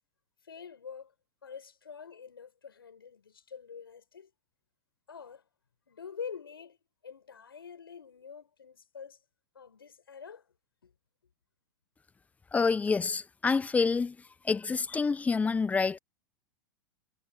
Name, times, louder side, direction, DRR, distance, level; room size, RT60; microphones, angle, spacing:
voice 1, 0.4-1.1 1.4-4.3 5.1-5.4 5.9-6.8 7.0-9.2 9.5-10.5 10.8-10.9, left 6 dB, 85° left, 6.7 m, -46 dB
voice 2, 12.5-14.2 14.4-16.0, left 4 dB, 10° left, 0.6 m, -27 dB
hypercardioid pair, 100°, 12 cm